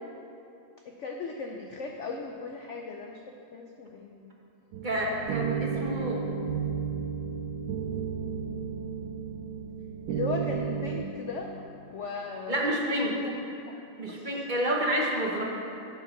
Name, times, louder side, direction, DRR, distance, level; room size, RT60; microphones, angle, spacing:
voice 1, 0.9-3.2 3.5-4.3 10.1-11.5 11.9-13.3 13.7-13.8 14.1-14.5, left 4 dB, 80° left, 2 dB, 0.6 m, -37 dB
sound 1, 4.7-11.0, right 6 dB, 90° right, 1.3 m, -33 dB
voice 2, 4.8-6.2 12.5-13.2 14.0-15.4, right 1 dB, 35° right, -2 dB, 0.9 m, -29 dB
10.0 x 5.8 x 5.7 m, 2.8 s
omnidirectional pair, 2.0 m